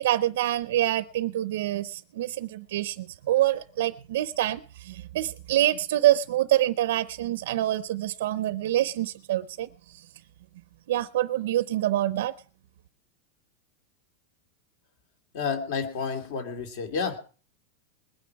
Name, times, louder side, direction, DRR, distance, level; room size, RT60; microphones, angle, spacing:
voice 1, 0.0-10.0 10.9-12.3, right 13 dB, 70° right, 0.6 m, -26 dB
voice 2, 15.3-17.2, left 5 dB, 50° left, 2.6 m, -30 dB
21.0 x 9.5 x 4.7 m
supercardioid pair, 180°, 0 cm